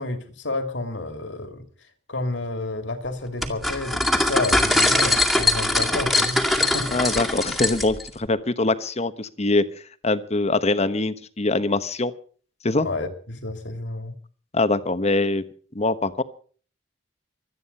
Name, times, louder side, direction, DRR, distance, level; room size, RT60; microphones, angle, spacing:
voice 1, 0.0-1.6 2.1-7.0 12.8-14.1, left 2 dB, 75° left, 7 dB, 2.7 m, -30 dB
sound 1, 3.4-8.1, left 2 dB, ahead, 2.2 m, -22 dB
voice 2, 6.9-12.1 12.6-12.9 14.5-15.4 15.7-16.2, left 2 dB, 35° left, 12 dB, 1.1 m, -23 dB
25.0 x 9.5 x 5.5 m, 0.44 s
head